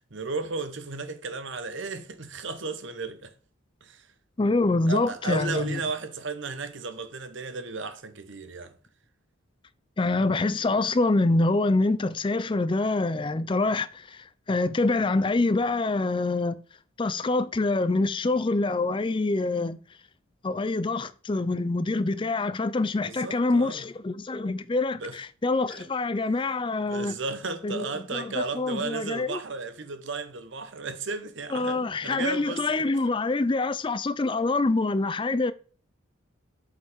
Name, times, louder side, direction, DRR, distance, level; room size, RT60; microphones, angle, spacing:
voice 1, 0.0-3.3 3.8-4.1 4.9-8.7 23.0-23.8 24.9-25.2 25.7-25.9 26.8-32.7, right 4 dB, 60° right, 0.9 m, -34 dB
voice 2, 4.4-5.8 10.0-16.6 17.0-19.8 20.4-27.2 27.6-29.4 31.5-35.5, left 2 dB, 25° left, 0.4 m, -26 dB
7.7 x 5.3 x 3.6 m
head